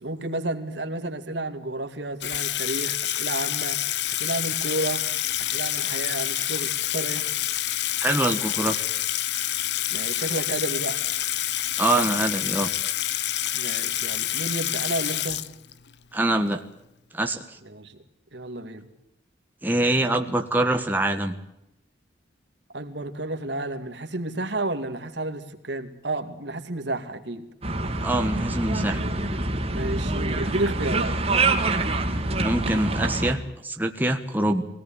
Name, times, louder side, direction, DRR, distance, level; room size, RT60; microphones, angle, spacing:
voice 1, 0.0-3.8 4.2-5.0 5.4-7.2 9.9-11.0 13.5-15.4 17.6-18.0 18.3-18.9 22.7-27.5 29.7-31.2, right 2 dB, 65° right, 7 dB, 2.5 m, -31 dB
Water tap faucet / Sink (filling or washing), 2.2-15.9, left 12 dB, 60° left, 0.9 m, -27 dB
voice 2, 8.0-8.9 11.8-12.7 16.1-16.6 17.1-17.6 19.6-21.4 28.0-29.0 32.4-34.7, right 1 dB, 10° right, 4 dB, 1.4 m, -24 dB
sound 1, 27.6-33.3, right 2 dB, 35° right, 2.6 m, -25 dB
22.5 x 18.0 x 8.9 m, 0.87 s
head